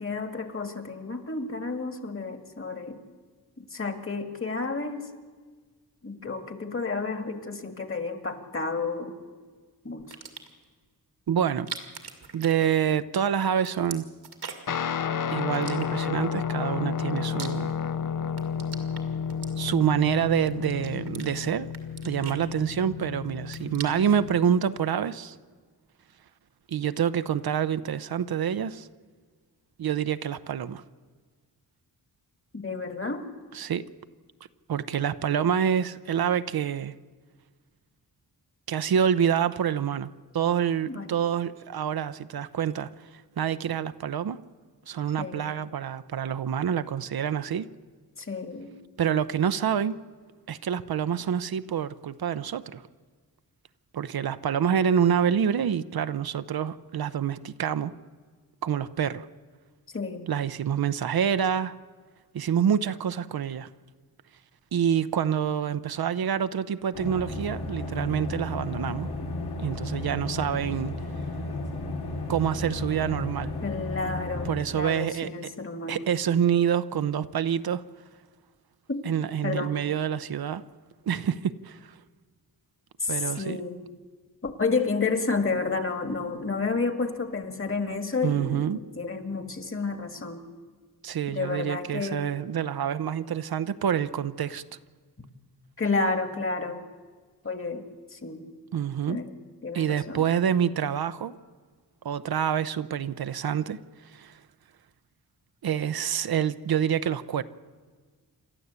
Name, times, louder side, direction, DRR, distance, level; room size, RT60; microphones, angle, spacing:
voice 1, 0.0-3.0 3.6-5.1 6.0-9.2 9.8-10.2 32.5-33.3 40.9-41.1 45.2-45.5 48.2-48.8 59.9-60.3 73.6-76.0 78.9-79.0 79.4-79.7 83.0-83.8 84.4-90.4 91.3-92.3 95.8-96.8 97.4-98.5 99.1-99.4 99.6-100.3, left 4 dB, 35° left, 1.9 m, -31 dB
sound 1, 10.0-10.6 11.5-13.2 13.4-14.8 15.5-16.3 16.9-18.0 18.3-20.0 20.5-21.3 21.7-23.0 23.3-24.2, right 6 dB, 85° right, 2.2 m, -42 dB
voice 2, 11.3-11.7 12.3-14.1 15.3-17.7 19.6-21.7 22.0-25.4 26.7-28.9 29.8-30.8 33.5-33.8 34.7-36.9 38.7-44.4 44.9-47.7 49.0-50.0 50.5-52.8 53.9-57.9 58.6-59.3 60.3-61.8 62.3-63.7 64.7-69.1 69.6-70.9 72.3-73.5 74.4-75.3 75.9-77.8 79.0-80.6 81.1-81.9 83.1-83.6 88.2-88.8 91.0-94.6 98.7-99.2 99.7-101.4 102.0-103.8 104.1-104.4 105.6-107.4, right 8 dB, 70° right, 0.7 m, -27 dB
Guitar, 14.7-24.4, left 7 dB, 55° left, 0.7 m, -31 dB
sound 2, 66.9-74.6, left 2 dB, 90° left, 2.6 m, -33 dB
27.5 x 12.5 x 8.2 m
wide cardioid pair, 100°, 38 cm